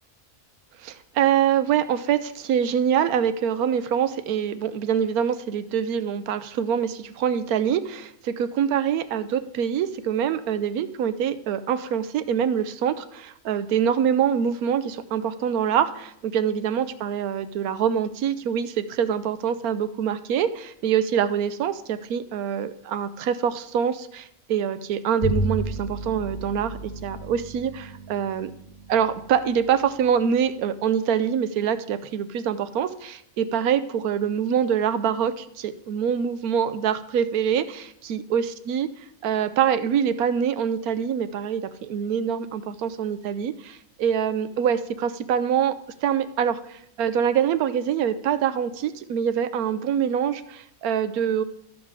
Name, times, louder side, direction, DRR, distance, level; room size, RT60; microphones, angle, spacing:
voice 1, 0.8-28.5 28.9-38.9 39.2-45.7 46.0-51.4, right 8 dB, 85° right, 12 dB, 1.1 m, -25 dB
Bowed string instrument, 25.2-30.9, right 1 dB, 50° left, 3.3 m, -33 dB
13.5 x 5.2 x 4.8 m, 0.73 s
omnidirectional pair, 1.5 m